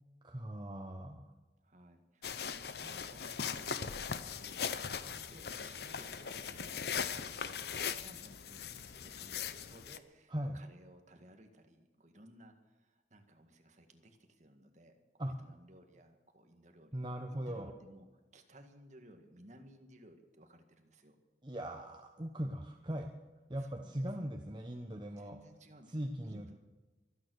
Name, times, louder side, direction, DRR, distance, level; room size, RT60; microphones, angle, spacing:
voice 1, 0.2-1.2 10.3-10.6 15.2-15.3 16.9-17.7 21.4-23.1 23.5-25.4 25.9-26.6, right 1 dB, 25° right, 3 dB, 1.0 m, -40 dB
voice 2, 1.6-4.7 5.0-14.9 15.3-17.0 17.3-18.1 18.3-21.2 23.6-24.3 24.7-26.6, right 1 dB, 40° right, 5 dB, 1.8 m, -59 dB
sound 1, 2.2-10.0, left 7 dB, 60° left, 0.8 m, -40 dB
24.0 x 9.4 x 6.4 m, 1.2 s
head